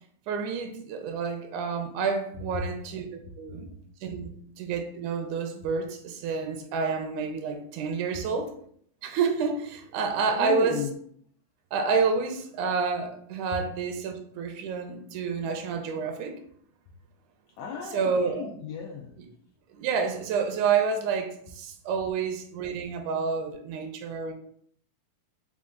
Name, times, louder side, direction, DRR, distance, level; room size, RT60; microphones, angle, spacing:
voice 1, 0.3-3.1 3.4-3.7 4.0-4.3 4.6-8.5 9.0-10.8 11.7-16.4 17.9-18.5 19.7-24.3, right 5 dB, 85° right, 5 dB, 2.0 m, -29 dB
voice 2, 10.2-10.9 17.6-19.2, left 6 dB, 85° left, 0 dB, 1.4 m, -35 dB
5.1 x 2.4 x 3.6 m, 0.63 s
omnidirectional pair, 3.4 m